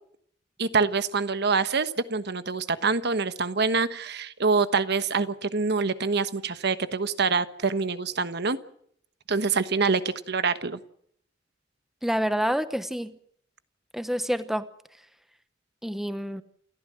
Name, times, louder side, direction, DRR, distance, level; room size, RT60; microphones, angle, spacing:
voice 1, 0.6-8.6 9.3-10.0 10.3-10.8, right 4 dB, 60° right, 12 dB, 1.2 m, -25 dB
voice 2, 12.0-13.1 13.9-14.7 15.8-16.4, equal, ahead, 11 dB, 0.9 m, -27 dB
28.5 x 14.0 x 7.6 m, 0.67 s
head